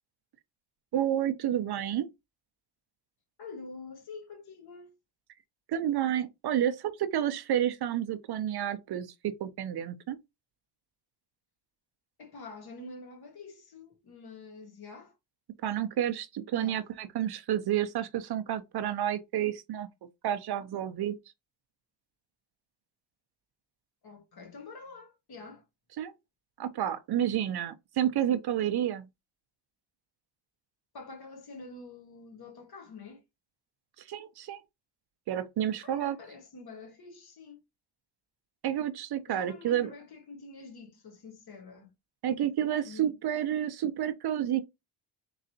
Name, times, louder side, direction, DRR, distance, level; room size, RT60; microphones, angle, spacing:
voice 1, 0.9-2.1 5.7-10.2 15.6-19.9 20.2-21.2 26.0-26.1 26.6-29.1 34.0-34.6 35.3-36.2 38.6-39.9 42.2-44.6, right 10 dB, 55° right, 0.6 m, -30 dB
voice 2, 3.4-5.0 12.2-15.1 16.5-16.9 24.0-25.6 30.9-33.2 35.8-37.6 39.3-41.9 42.8-43.1, left 3 dB, 55° left, 1.5 m, -47 dB
3.8 x 3.1 x 2.7 m
cardioid pair, 100°, 46 cm